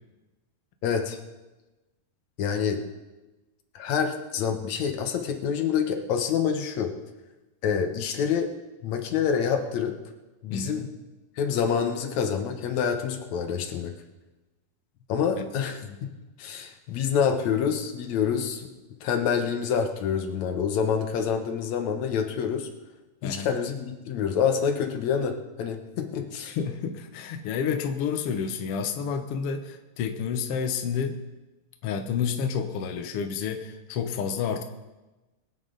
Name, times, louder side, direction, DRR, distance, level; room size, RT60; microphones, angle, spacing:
voice 1, 0.8-1.2 2.4-2.8 3.8-6.9 7.6-8.5 8.8-10.0 10.4-10.8 11.4-13.9 15.1-16.1 16.4-18.7 19.0-22.7 23.2-26.6, left 7 dB, 65° left, 5 dB, 2.2 m, -27 dB
voice 2, 10.5-10.9 15.9-16.0 23.2-23.5 26.5-31.2 31.8-34.6, left 6 dB, 85° left, 6 dB, 1.3 m, -30 dB
23.0 x 8.8 x 4.0 m, 1.1 s
omnidirectional pair, 4.1 m